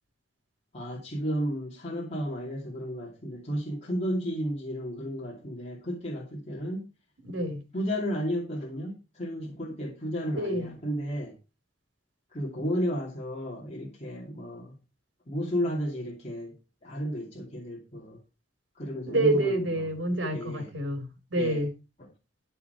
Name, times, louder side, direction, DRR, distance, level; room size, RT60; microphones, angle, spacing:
voice 1, 0.7-6.8 7.7-11.4 12.3-14.8 15.3-18.2 18.8-19.9 20.3-20.7 21.3-21.6, equal, 35° left, 2.6 m, -33 dB
voice 2, 7.2-7.6 10.3-10.7 19.1-21.7, right 1 dB, 75° right, 4.1 m, -28 dB
13.0 x 6.8 x 4.6 m
head